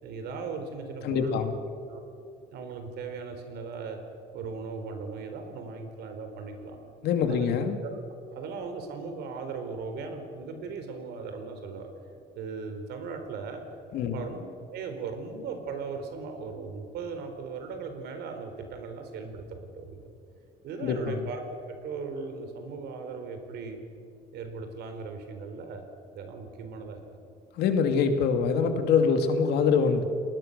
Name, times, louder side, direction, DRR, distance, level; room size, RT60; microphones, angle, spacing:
voice 1, 0.0-1.4 1.9-2.0 2.5-4.0 4.3-6.8 7.3-7.5 8.3-11.9 12.3-13.6 14.1-14.5 14.7-20.1 20.6-21.4 21.7-23.8 24.3-25.8 26.1-27.0, right 5 dB, 75° right, 6 dB, 4.2 m, -38 dB
voice 2, 1.0-1.5 7.0-7.8 13.9-14.3 20.8-21.3 27.5-30.0, left 6 dB, 75° left, 6 dB, 2.6 m, -24 dB
30.0 x 20.0 x 6.8 m, 2.5 s
cardioid pair, 110°, 17 cm